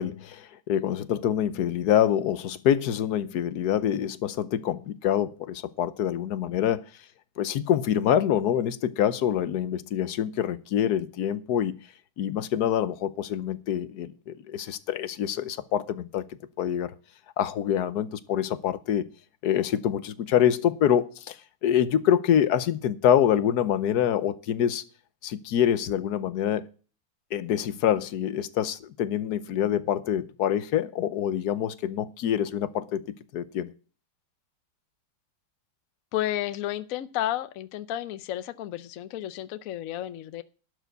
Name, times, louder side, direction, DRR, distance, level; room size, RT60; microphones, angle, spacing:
voice 1, 0.0-6.8 7.4-11.8 12.2-16.9 17.4-19.1 19.4-21.4 21.6-24.8 25.2-26.6 27.3-33.7, left 10 dB, 65° left, 1.1 m, -26 dB
voice 2, 36.1-40.4, left 13 dB, 80° left, 0.7 m, -32 dB
12.0 x 4.9 x 7.9 m
omnidirectional pair, 2.2 m